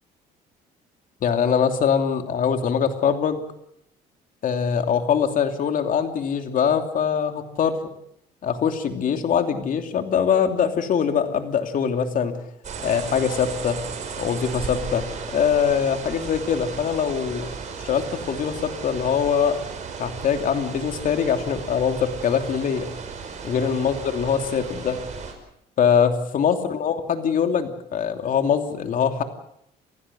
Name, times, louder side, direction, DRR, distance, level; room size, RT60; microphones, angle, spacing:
voice 1, 1.2-3.4 4.4-7.9 8.4-12.3 12.8-13.8 14.2-15.0 15.3-17.5 17.8-19.6 20.0-22.9 23.4-25.0 25.8-29.2, left 7 dB, 55° left, 6 dB, 3.0 m, -23 dB
sound 1, 12.6-25.3, right 5 dB, 45° right, 5.4 m, -35 dB
29.0 x 16.0 x 7.6 m, 0.75 s
cardioid pair, 110°, 17 cm